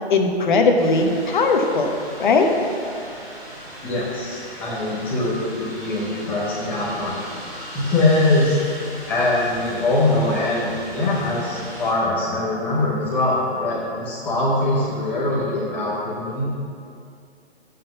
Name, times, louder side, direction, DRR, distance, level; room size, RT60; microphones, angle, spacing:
voice 1, 0.1-1.9 2.2-2.5, left 3 dB, 45° left, 3 dB, 1.1 m, -18 dB
sound 1, 0.8-11.9, equal, 10° right, 1.3 m, -38 dB
voice 2, 3.8-7.2 7.7-8.6 9.1-16.5, left 2 dB, 5° left, -7 dB, 0.7 m, -22 dB
7.4 x 5.8 x 6.7 m, 2.4 s
hypercardioid pair, 160°, 33 cm